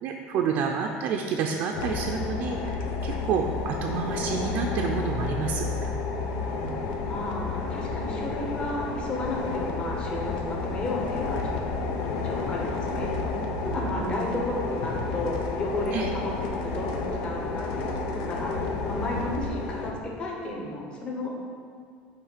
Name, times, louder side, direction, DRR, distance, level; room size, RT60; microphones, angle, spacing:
voice 1, 0.0-6.0 6.6-6.8 13.9-14.4 15.9-16.1 19.4-19.5, right 6 dB, 50° right, 1 dB, 0.5 m, -29 dB
sound 1, 1.7-19.9, left 3 dB, 90° left, 0.9 m, -31 dB
voice 2, 7.1-11.7 12.1-13.1 13.6-16.3 16.6-17.9 18.3-21.3, left 1 dB, 25° left, -2 dB, 1.0 m, -33 dB
8.8 x 3.2 x 6.6 m, 2.2 s
cardioid pair, 165°, 4 cm